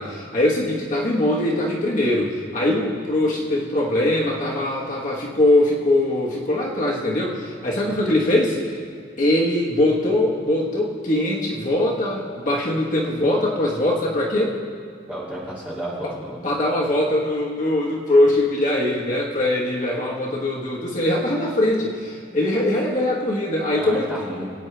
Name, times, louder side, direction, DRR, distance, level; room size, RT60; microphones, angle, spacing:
voice 1, 0.0-8.8 9.2-14.5 16.0-16.1 16.4-24.2, left 1 dB, 40° left, -3 dB, 1.3 m, -22 dB
voice 2, 7.8-8.1 15.1-16.4 23.7-24.5, right 1 dB, 5° right, -7 dB, 2.5 m, -32 dB
23.0 x 8.9 x 3.3 m, 2.2 s
head